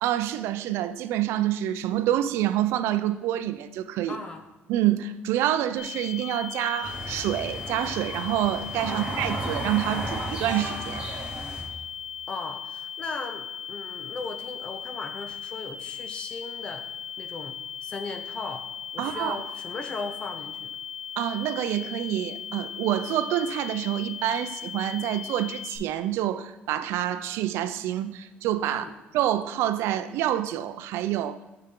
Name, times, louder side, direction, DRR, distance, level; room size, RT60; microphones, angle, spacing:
voice 1, 0.0-4.2 4.7-11.1 19.0-19.4 21.2-28.9 29.1-31.4, right 12 dB, 85° right, 0.4 m, -27 dB
voice 2, 4.1-4.4 8.9-9.1 12.3-16.8 17.2-17.5 17.8-18.6 18.9-20.8 28.7-28.9, left 3 dB, 25° left, 0.5 m, -37 dB
sound 1, 5.8-25.8, left 8 dB, 55° left, 1.3 m, -38 dB
sound 2, 6.8-11.6, right 2 dB, 20° right, 1.8 m, -34 dB
6.7 x 5.6 x 3.7 m
cardioid pair, 170°, 4 cm